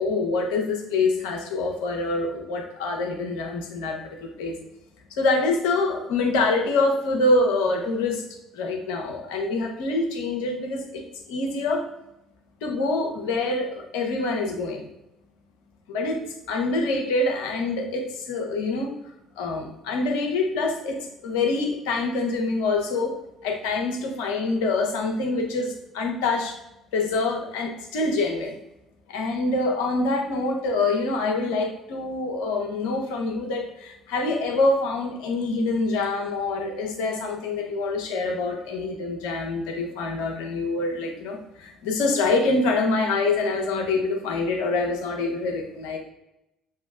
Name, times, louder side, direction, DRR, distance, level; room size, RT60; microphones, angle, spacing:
voice 1, 0.0-4.0 4.4-4.6 5.1-8.2 8.5-11.0 11.3-11.8 12.6-14.9 15.9-16.2 16.5-18.9 19.4-23.1 23.4-26.5 26.9-28.6 29.1-46.0, left 3 dB, 80° left, 2 dB, 1.0 m, -25 dB
6.9 x 3.1 x 2.5 m, 0.87 s
hypercardioid pair, 60°, 0 cm